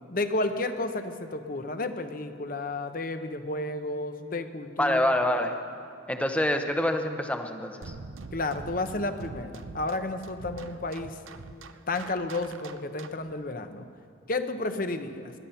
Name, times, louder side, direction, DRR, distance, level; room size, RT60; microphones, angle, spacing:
voice 1, 0.0-5.3 8.3-11.2 11.9-13.9 14.3-15.3, left 2 dB, 45° left, 9 dB, 0.8 m, -32 dB
voice 2, 4.8-5.6 6.1-7.9, left 1 dB, 5° left, 6 dB, 0.8 m, -26 dB
sound 1, 7.8-13.3, right 3 dB, 90° right, 0.7 m, -43 dB
20.5 x 11.5 x 5.7 m, 2.5 s
head